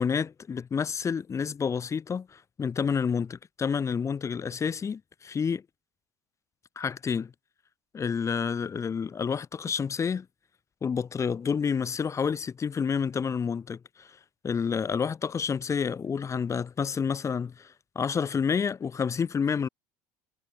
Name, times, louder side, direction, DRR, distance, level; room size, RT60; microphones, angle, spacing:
voice 1, 0.0-5.6 6.8-7.3 7.9-10.3 10.8-14.2 14.4-19.7, left 6 dB, 30° left, 2.2 m, -29 dB
hypercardioid pair, 65°, 10 cm